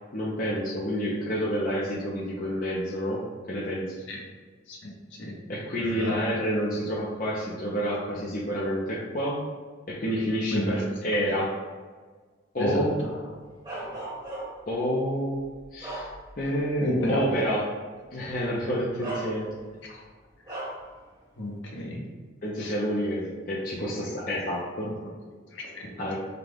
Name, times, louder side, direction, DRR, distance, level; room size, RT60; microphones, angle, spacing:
voice 1, 0.1-4.0 5.5-9.5 9.9-11.6 12.5-13.0 14.7-16.1 16.4-17.8 18.1-19.6 22.4-24.9 26.0-26.2, equal, 40° left, -6 dB, 0.7 m, -29 dB
voice 2, 5.8-6.3 10.5-10.8 12.6-13.1 13.7-14.0 16.8-17.2 19.9-20.0 21.4-22.1 22.6-22.7 25.5-26.0, left 1 dB, 65° left, -2 dB, 1.0 m, -31 dB
Bark, 13.6-14.7 15.3-16.6 17.0-17.2 18.3-18.4 19.0-19.8 20.5-20.9, right 2 dB, 20° right, 1.4 m, -37 dB
5.8 x 2.4 x 3.5 m, 1.4 s
head